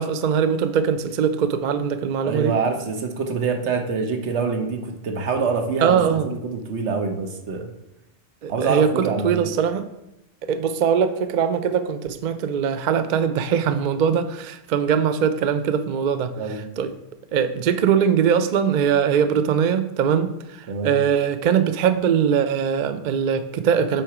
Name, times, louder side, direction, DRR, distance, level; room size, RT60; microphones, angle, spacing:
voice 1, 0.0-2.5 5.8-6.3 8.4-9.9 10.5-16.3 16.8-16.9 17.3-24.0, right 7 dB, 60° right, 10 dB, 0.5 m, -21 dB
voice 2, 2.2-7.7 8.5-9.4 16.4-16.6 20.7-21.0, right 4 dB, 75° right, 4 dB, 1.2 m, -25 dB
7.8 x 4.5 x 4.8 m, 0.88 s
omnidirectional pair, 1.2 m